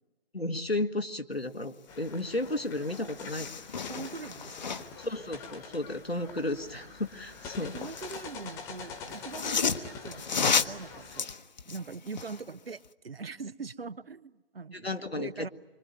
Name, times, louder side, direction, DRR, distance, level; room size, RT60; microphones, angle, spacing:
voice 1, 0.3-3.5 5.0-7.7 14.7-15.3, left 2 dB, 90° left, 8 dB, 1.8 m, -33 dB
sound 1, 1.9-11.2, left 5 dB, 10° left, 1.3 m, -45 dB
sound 2, 2.5-2.6 2.8-5.1 7.2-8.3 9.1-12.4 12.8-12.9, left 5 dB, 45° left, 1.0 m, -32 dB
voice 2, 3.9-4.9 7.6-11.3 11.7-15.5, right 4 dB, 75° right, 18 dB, 0.9 m, -42 dB
25.0 x 24.5 x 9.4 m, 1.2 s
figure-of-eight pair, 145°, 30 cm